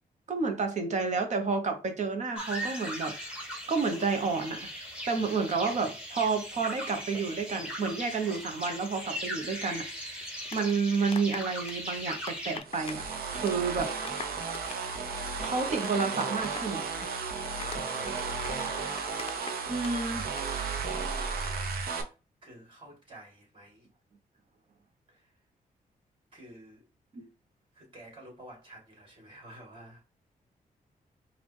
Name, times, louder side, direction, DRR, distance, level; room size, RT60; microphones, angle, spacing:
voice 1, 0.3-3.1 3.7-4.7 5.1-13.0 13.3-13.9 15.4-16.8 19.7-20.3 27.1-27.3, right 4 dB, 50° right, 1.1 m, -30 dB
sound 1, 2.4-12.6, equal, 5° right, 1.5 m, -39 dB
voice 2, 5.1-5.8 17.6-18.8 22.4-23.9 25.1-25.3 26.3-26.8 27.7-30.0, right 1 dB, 35° right, 2.4 m, -51 dB
sound 2, 10.2-13.1 13.4-13.7 13.9-19.9 20.2-20.4, left 6 dB, 40° left, 0.5 m, -43 dB
sound 3, 12.7-22.0, right 5 dB, 90° right, 0.8 m, -34 dB
4.9 x 2.5 x 3.5 m
cardioid pair, 110°, 15 cm